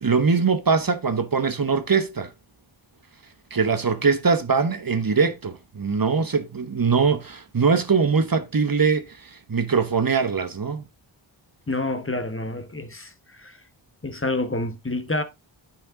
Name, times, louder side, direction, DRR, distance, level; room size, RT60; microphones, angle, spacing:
voice 1, 0.0-2.3 3.5-10.8, right 5 dB, 45° right, 1.1 m, -22 dB
voice 2, 11.7-13.6 14.0-15.2, left 2 dB, 25° left, 1.2 m, -28 dB
8.5 x 6.0 x 3.6 m
wide cardioid pair, 55°, 47 cm